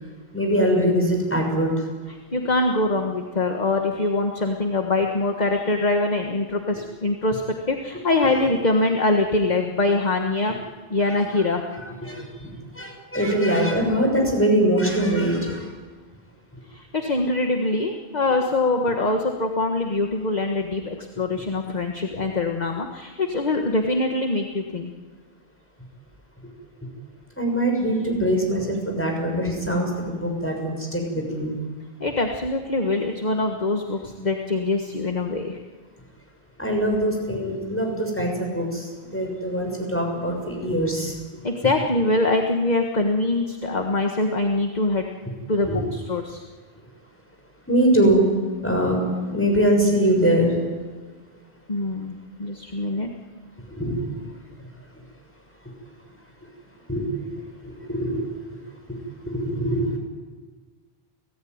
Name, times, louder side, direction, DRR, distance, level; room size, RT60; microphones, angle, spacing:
voice 1, 0.3-1.9 8.2-8.3 12.0-15.7 27.4-31.5 36.6-41.1 45.6-45.8 47.7-48.3 48.6-50.5 53.7-53.9 56.9-58.1 59.3-60.0, right 1 dB, 10° left, 1 dB, 6.4 m, -23 dB
voice 2, 2.1-7.4 7.7-10.5 10.9-11.6 16.7-24.9 32.0-35.6 41.4-45.1 45.5-46.4 51.7-53.1, left 2 dB, 45° left, 3 dB, 1.6 m, -23 dB
30.0 x 18.0 x 9.6 m, 1.5 s
omnidirectional pair, 1.1 m